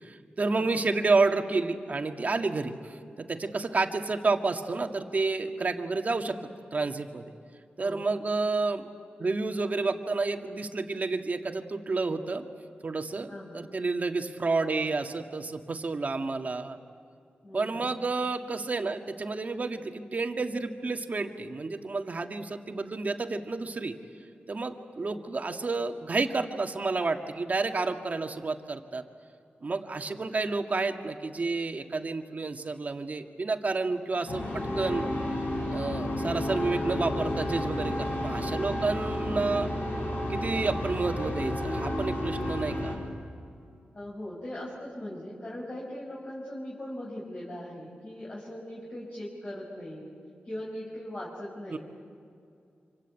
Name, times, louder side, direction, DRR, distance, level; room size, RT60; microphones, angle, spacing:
voice 1, 0.0-6.4 6.7-7.3 7.8-8.9 9.2-12.4 12.8-16.8 17.5-24.0 24.5-29.0 29.6-35.1 35.7-39.7 40.3-42.9 51.7-51.8, right 3 dB, 45° right, 5 dB, 1.9 m, -30 dB
voice 2, 13.3-13.7 14.2-14.3 17.4-17.9 25.1-25.2 43.9-50.1 50.4-51.8, left 1 dB, 35° left, -6 dB, 5.9 m, -40 dB
sound 1, 34.3-42.9, left 1 dB, 70° left, 8.0 m, -31 dB
26.5 x 25.5 x 8.4 m, 2.4 s
wide cardioid pair, 80°, 4 cm